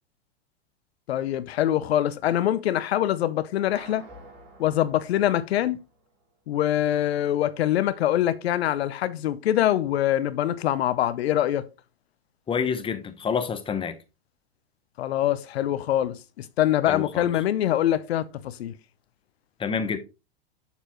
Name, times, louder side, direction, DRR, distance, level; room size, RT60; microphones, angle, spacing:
voice 1, 1.1-4.0 4.6-5.8 6.5-11.7 15.0-18.7, left 12 dB, 80° left, 0.7 m, -24 dB
sound 1, 3.7-6.2, right 2 dB, 35° right, 4.3 m, -49 dB
voice 2, 12.5-14.0 16.9-17.3 19.6-20.0, left 6 dB, 15° left, 1.0 m, -28 dB
6.9 x 6.7 x 3.0 m
hypercardioid pair, 120°, 31 cm